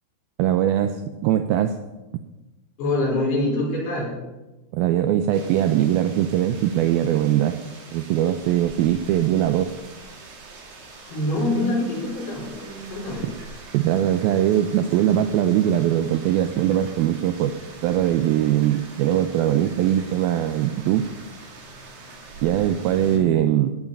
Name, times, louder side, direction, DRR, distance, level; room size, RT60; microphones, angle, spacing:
voice 1, 0.4-1.7 4.7-7.6 7.9-9.7 13.7-17.6 17.8-21.1 22.4-23.8, right 11 dB, 80° right, 9 dB, 2.3 m, -21 dB
voice 2, 2.8-4.2 11.1-13.3 23.0-23.3, left 1 dB, 75° left, -5 dB, 6.5 m, -25 dB
sound 1, 5.3-23.2, right 3 dB, 50° right, 3.3 m, -43 dB
16.0 x 9.6 x 5.4 m, 1.1 s
omnidirectional pair, 4.6 m